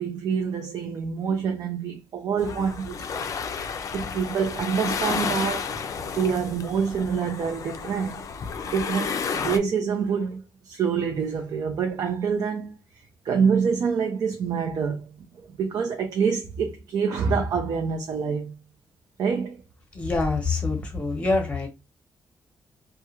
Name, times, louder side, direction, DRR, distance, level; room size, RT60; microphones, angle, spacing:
voice 1, 0.0-3.3 3.6-5.8 6.1-8.2 8.6-12.7 13.2-15.1 15.5-18.5 19.2-19.6 20.8-20.9, right 6 dB, 60° right, 0.5 m, -26 dB
sound 1, 2.4-9.6, left 6 dB, 50° left, 0.3 m, -31 dB
voice 2, 19.9-21.7, left 3 dB, 15° left, 0.8 m, -25 dB
2.3 x 2.2 x 2.9 m
cardioid pair, 135°, 7 cm